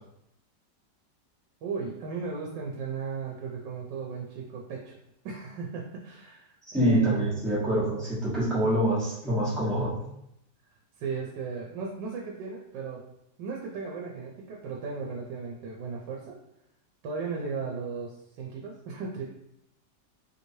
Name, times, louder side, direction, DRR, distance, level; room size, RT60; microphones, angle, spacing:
voice 1, 1.6-5.0 5.2-7.5 11.0-13.0 13.4-16.4 17.0-19.2, right 5 dB, 85° right, -1 dB, 1.3 m, -36 dB
voice 2, 6.7-10.0, right 1 dB, ahead, -9 dB, 0.9 m, -25 dB
3.3 x 3.0 x 2.7 m, 0.79 s
omnidirectional pair, 1.9 m